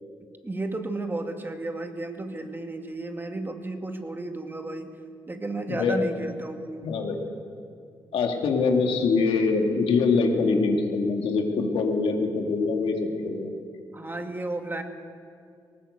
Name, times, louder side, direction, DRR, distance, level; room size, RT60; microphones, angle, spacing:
voice 1, 0.4-4.9 5.3-6.9 13.9-14.8, right 2 dB, 20° right, 5 dB, 2.3 m, -33 dB
voice 2, 5.7-6.0 6.8-7.2 8.1-13.0 13.2-13.6, left 4 dB, 85° left, 2 dB, 2.5 m, -24 dB
19.5 x 18.5 x 8.1 m, 2.3 s
cardioid pair, 70°, 9 cm